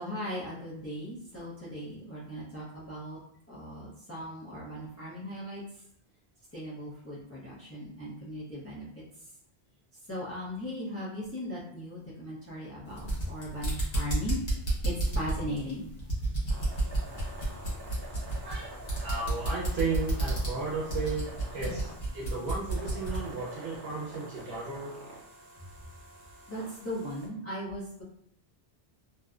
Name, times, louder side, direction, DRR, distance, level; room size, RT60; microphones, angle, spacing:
voice 1, 0.0-3.2 3.5-5.6 6.5-8.9 10.1-14.4 14.8-15.9 21.6-21.8 25.6-25.7 26.5-28.0, equal, 20° left, -7 dB, 0.5 m, -38 dB
sound 1, 12.9-23.3, right 2 dB, 65° left, 1.1 m, -32 dB
sound 2, 16.5-27.3, right 1 dB, 35° right, 0.4 m, -47 dB
voice 2, 19.0-21.3 21.5-21.9 22.1-24.9, right 3 dB, 80° right, -5 dB, 0.9 m, -34 dB
2.6 x 2.1 x 2.4 m, 0.67 s
omnidirectional pair, 1.1 m